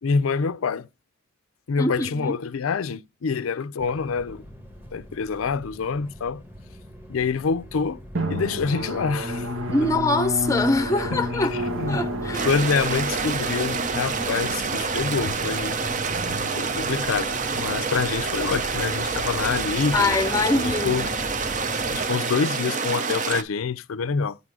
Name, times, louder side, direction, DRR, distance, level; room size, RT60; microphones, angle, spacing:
voice 1, 0.0-0.9 1.7-4.4 4.9-6.4 7.1-8.0 8.3-9.5 11.1-12.0 12.4-15.8 16.5-20.2 20.5-21.1 21.4-21.6 21.9-24.4, left 5 dB, 90° left, 0.5 m, -26 dB
voice 2, 1.8-2.4 9.7-11.6 11.9-12.5 19.9-21.1, left 2 dB, 15° left, 0.6 m, -24 dB
sound 1, 3.8-22.1, left 1 dB, 10° right, 1.2 m, -40 dB
Drum, 8.1-17.4, equal, 85° right, 1.2 m, -31 dB
sound 2, 12.3-23.4, right 5 dB, 40° right, 0.6 m, -27 dB
8.4 x 3.6 x 6.1 m
head